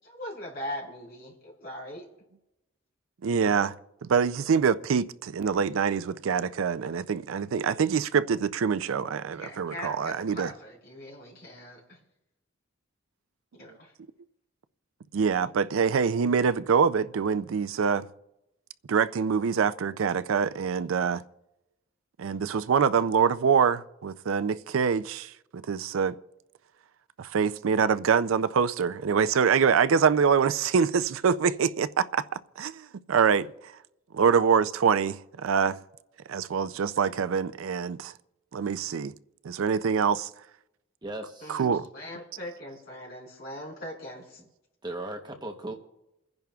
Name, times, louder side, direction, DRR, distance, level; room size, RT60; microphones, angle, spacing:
voice 1, 0.0-2.0 9.3-12.0 13.6-13.9 41.4-41.7 41.9-44.4, equal, 50° left, 5.4 m, -40 dB
voice 2, 3.2-3.7 4.0-10.5 15.1-18.1 18.9-21.2 22.2-25.3 25.7-26.2 27.2-33.7 34.1-35.8 36.3-38.1 38.5-39.1 39.4-40.3 41.5-41.9, right 6 dB, 80° right, 0.4 m, -25 dB
voice 3, 41.0-41.7 44.8-45.7, right 2 dB, 20° right, 0.9 m, -37 dB
29.5 x 10.5 x 2.3 m
head